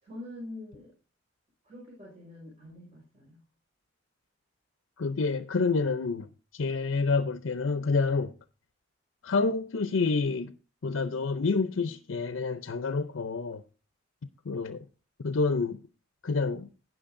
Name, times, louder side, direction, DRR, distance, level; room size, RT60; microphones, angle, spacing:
voice 1, 0.0-0.9 1.6-3.4, left 1 dB, 35° right, 5.3 m, -45 dB
voice 2, 5.0-6.3 6.5-8.3 9.2-10.5 10.8-13.6 14.4-14.8 15.2-15.8 16.2-16.7, left 4 dB, 80° left, 0.6 m, -28 dB
18.5 x 6.2 x 2.6 m
head